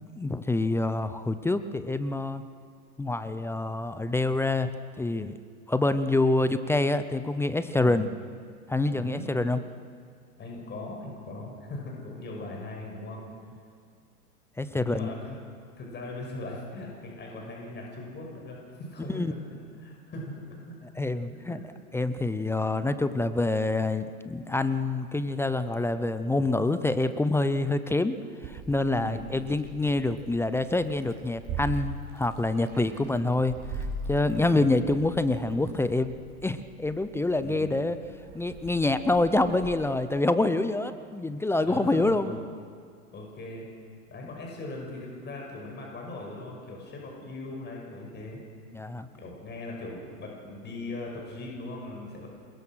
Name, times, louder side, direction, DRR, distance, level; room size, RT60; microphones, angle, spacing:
voice 1, 0.2-2.4 3.0-5.3 5.7-8.1 8.7-9.6 14.6-15.1 19.1-19.3 21.0-21.6 21.9-28.2 28.4-36.1 36.4-38.0 38.3-42.4 48.7-49.1, left 2 dB, 5° left, 11 dB, 0.6 m, -26 dB
voice 2, 8.9-9.2 10.4-13.2 14.8-15.4 15.8-19.2 19.5-20.9 21.5-21.6 28.9-29.3 32.7-33.0 34.3-34.7 37.4-37.8 41.6-42.4 43.1-43.7 44.1-48.4 49.1-52.3, left 2 dB, 20° left, 0 dB, 6.3 m, -39 dB
Meow, 28.4-39.7, right 2 dB, 35° right, 6.6 m, -41 dB
27.5 x 22.0 x 6.3 m, 2.1 s
hypercardioid pair, 110°, 47 cm